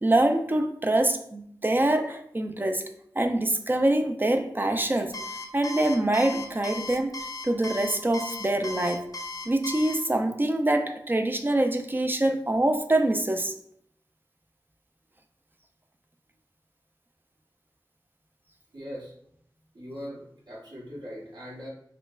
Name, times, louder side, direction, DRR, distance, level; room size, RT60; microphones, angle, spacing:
voice 1, 0.0-2.8 3.2-5.2 5.5-7.1 7.4-9.1 9.5-13.5, right 1 dB, 25° right, 6 dB, 0.3 m, -25 dB
Alarm, 5.1-10.0, left 2 dB, 50° left, 0.4 m, -36 dB
voice 2, 18.7-19.1 19.7-21.7, equal, 70° right, -5 dB, 1.1 m, -40 dB
4.3 x 2.0 x 2.3 m, 0.68 s
wide cardioid pair, 60°, 8 cm